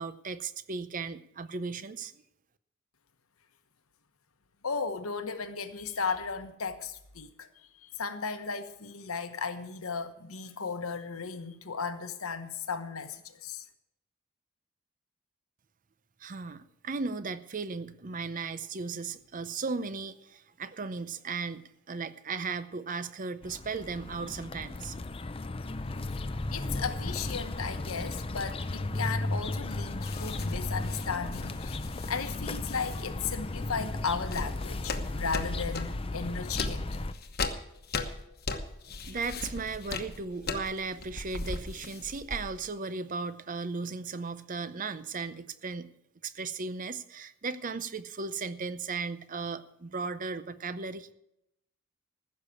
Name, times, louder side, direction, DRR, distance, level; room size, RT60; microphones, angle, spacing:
voice 1, 0.0-2.1 16.2-25.0 39.0-45.9 46.2-51.1, right 4 dB, 40° right, 14 dB, 0.6 m, -36 dB
voice 2, 4.6-7.5 7.8-13.6 26.5-31.8 32.1-37.0, left 5 dB, 75° left, 9 dB, 1.1 m, -35 dB
sound 1, 23.4-37.1, left 2 dB, 25° left, 0.6 m, -35 dB
sound 2, 30.0-33.0 33.7-36.0 36.5-42.7, left 3 dB, 45° left, 1.1 m, -38 dB
15.0 x 6.6 x 8.4 m, 0.81 s
head